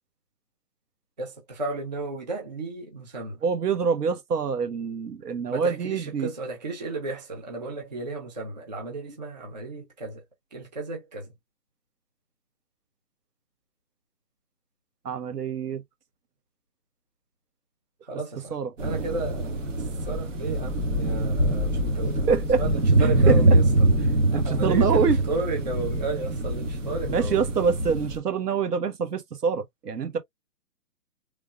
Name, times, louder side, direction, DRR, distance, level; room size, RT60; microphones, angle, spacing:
voice 1, 1.2-3.4 5.5-10.2 10.5-11.3 18.0-19.6 20.1-22.3 22.6-23.6 24.3-27.4, right 3 dB, 25° right, 0.7 m, -33 dB
voice 2, 3.4-6.3 15.0-15.8 18.5-18.7 22.3-22.6 23.0-23.6 24.3-25.2 27.1-30.2, right 6 dB, 70° right, 1.4 m, -26 dB
sound 1, 18.8-28.2, right 1 dB, 50° right, 1.4 m, -24 dB
3.5 x 3.3 x 2.5 m
hypercardioid pair, 175°, 48 cm